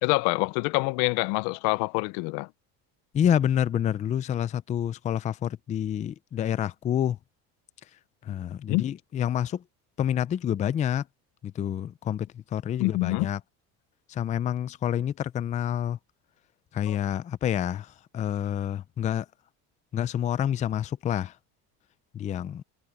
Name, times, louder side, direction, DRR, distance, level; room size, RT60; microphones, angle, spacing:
voice 1, 0.0-2.5 8.7-8.8 12.8-13.3 16.9-17.0, left 26 dB, 80° left, 0.6 m, -26 dB
voice 2, 3.1-7.2 8.2-9.6 10.0-11.1 11.4-13.4 14.1-16.0 16.7-19.3 19.9-21.4 22.1-22.6, left 10 dB, 20° left, 0.4 m, -28 dB
cardioid pair, 150°, 36 cm